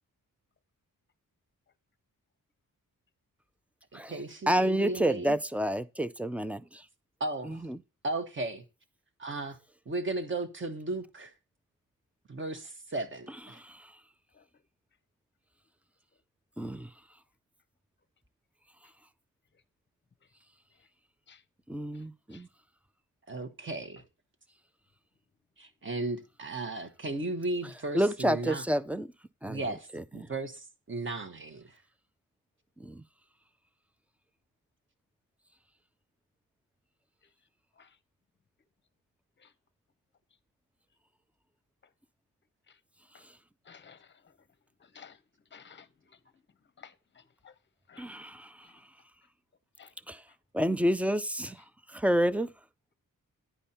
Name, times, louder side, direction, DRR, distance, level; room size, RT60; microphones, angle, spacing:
voice 1, 3.9-5.4 7.2-7.6 8.0-8.6 9.2-9.6 9.9-11.3 12.3-13.6 23.3-24.0 25.6-28.6 29.5-29.9 30.1-31.8, right 2 dB, 35° right, 1.1 m, -35 dB
voice 2, 4.5-6.8 7.5-7.8 13.5-13.9 16.6-16.9 21.7-22.5 27.9-29.1 29.4-29.6 29.9-30.0 32.8-33.0 48.0-48.7 50.1-50.2 50.5-51.6 51.9-52.5, equal, 5° right, 0.3 m, -29 dB
voice 3, 43.7-44.3 44.8-45.2 45.5-46.2 46.8-47.5 47.9-48.2 48.6-48.8 49.8-49.9, left 7 dB, 35° left, 0.7 m, -55 dB
10.0 x 5.2 x 4.3 m
wide cardioid pair, 145°, 34 cm